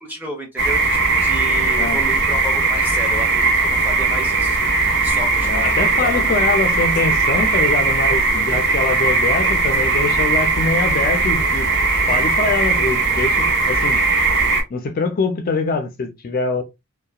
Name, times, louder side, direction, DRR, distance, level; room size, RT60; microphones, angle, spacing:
voice 1, 0.0-4.6 5.0-5.7 6.0-6.4, equal, 10° right, 0.5 m, -31 dB
sound 1, 0.6-14.6, right 3 dB, 55° right, 1.0 m, -18 dB
voice 2, 5.4-11.7 12.1-14.0 14.7-16.6, left 4 dB, 40° left, 0.3 m, -23 dB
2.8 x 2.2 x 2.2 m
head